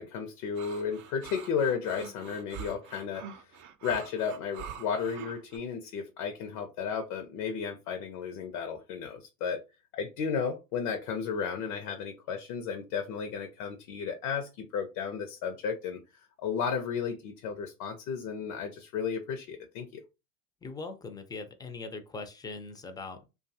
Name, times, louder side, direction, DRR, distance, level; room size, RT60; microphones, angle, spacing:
voice 1, 0.0-3.5 3.8-9.6 9.9-16.0 16.4-20.0, left 6 dB, 65° left, 0.7 m, -33 dB
sound 1, 0.6-5.6, right 8 dB, 40° right, 0.5 m, -45 dB
voice 2, 20.6-23.3, left 3 dB, 10° left, 0.5 m, -41 dB
2.5 x 2.4 x 2.6 m
hypercardioid pair, 85°, 44 cm